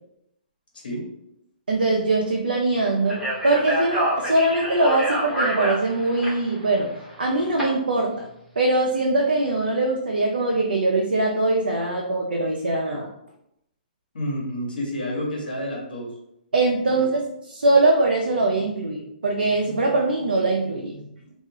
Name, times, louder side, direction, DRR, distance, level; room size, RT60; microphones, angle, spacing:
voice 1, 1.7-6.9 7.2-8.3 8.6-13.1 16.5-21.1, right 2 dB, 90° right, -1 dB, 0.4 m, -22 dB
Speech, 3.1-7.6, right 1 dB, 5° right, 1.0 m, -27 dB
voice 2, 14.1-16.1 16.9-17.0 21.2-21.3, equal, 80° left, -1 dB, 1.0 m, -29 dB
2.4 x 2.2 x 2.8 m, 0.80 s
hypercardioid pair, 135°, 5 cm